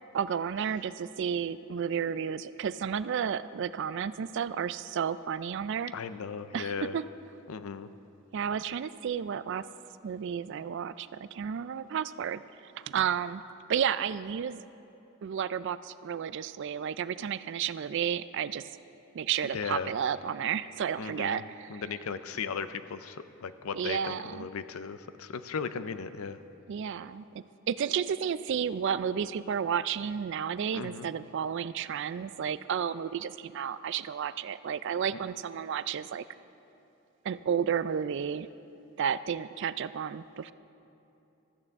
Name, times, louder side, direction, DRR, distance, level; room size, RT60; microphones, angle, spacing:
voice 1, 0.1-5.9 6.5-7.0 8.3-9.7 10.0-13.4 13.7-14.6 15.2-18.7 19.1-21.8 23.7-24.5 26.7-36.2 37.2-38.5 39.0-40.5, right 8 dB, 55° right, 15 dB, 0.3 m, -32 dB
voice 2, 5.9-7.0 7.5-7.9 19.5-19.9 21.0-21.4 21.7-26.4 30.7-31.1, left 5 dB, 75° left, 12 dB, 0.5 m, -36 dB
15.5 x 13.5 x 3.6 m, 2.8 s
head